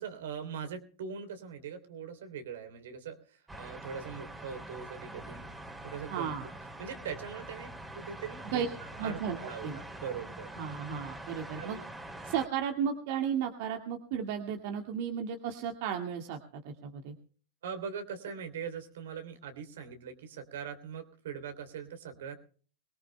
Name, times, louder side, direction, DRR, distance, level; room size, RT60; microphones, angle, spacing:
voice 1, 0.0-5.4 5.8-6.3 6.8-8.6 9.0-10.5 11.6-11.8 17.6-22.3, right 7 dB, 80° right, 6 dB, 3.2 m, -41 dB
sound 1, 3.5-12.5, right 1 dB, 10° right, 2.9 m, -45 dB
voice 2, 6.1-6.5 8.5-8.7 9.0-9.8 10.6-11.8 12.2-17.1, right 8 dB, 65° right, 4 dB, 1.9 m, -34 dB
23.5 x 19.0 x 2.2 m, 0.43 s
hypercardioid pair, 110°, 0 cm